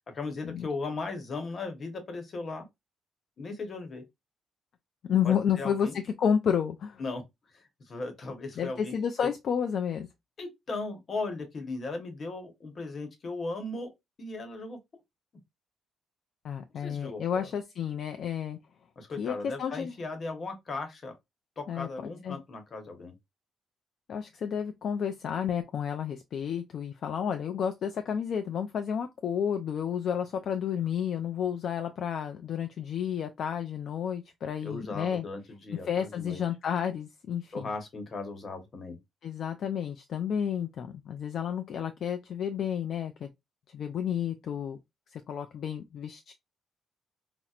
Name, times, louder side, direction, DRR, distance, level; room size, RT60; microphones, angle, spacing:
voice 1, 0.1-2.7 3.4-4.0 5.2-6.0 7.0-7.2 7.5-9.3 10.4-13.9 14.2-14.8 16.7-17.5 19.0-21.1 21.6-23.1 34.6-36.4 37.5-39.0, left 3 dB, 45° left, 1.0 m, -37 dB
voice 2, 5.0-7.0 8.6-10.1 16.4-18.6 19.2-19.9 21.7-21.9 22.2-22.4 24.1-35.2 35.8-37.7 39.2-43.3 43.7-44.8 45.1-46.3, left 8 dB, 65° left, 0.3 m, -31 dB
4.3 x 2.0 x 2.4 m
cardioid pair, 90°, 0 cm